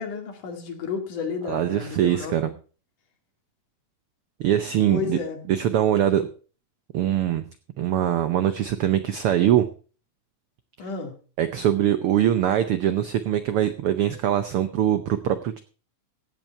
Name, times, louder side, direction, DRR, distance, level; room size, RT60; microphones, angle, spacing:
voice 1, 0.0-2.4 4.9-5.5 10.8-11.2, left 6 dB, 90° left, 4 dB, 3.8 m, -32 dB
voice 2, 1.4-2.5 4.4-5.2 5.5-6.3 6.9-7.4 7.8-9.7 11.4-15.6, right 11 dB, 90° right, 11 dB, 1.2 m, -22 dB
16.0 x 8.2 x 4.5 m, 0.37 s
omnidirectional pair, 3.5 m